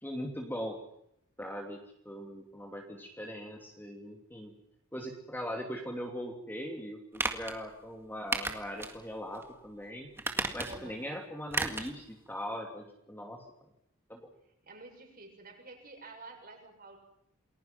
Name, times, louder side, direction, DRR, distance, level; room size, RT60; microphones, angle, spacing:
voice 1, 0.0-0.8 1.4-4.5 4.9-10.1 10.5-13.4 14.1-14.3, equal, 10° left, 2 dB, 2.8 m, -40 dB
sound 1, 7.1-7.6 8.3-9.0 9.3-9.4 10.2-10.9 11.5-11.9 12.3-12.4, right 2 dB, 10° right, 1.8 m, -33 dB
voice 2, 10.7-11.0 14.6-17.0, right 3 dB, 40° right, 2 dB, 6.7 m, -49 dB
28.5 x 21.0 x 5.9 m, 0.74 s
head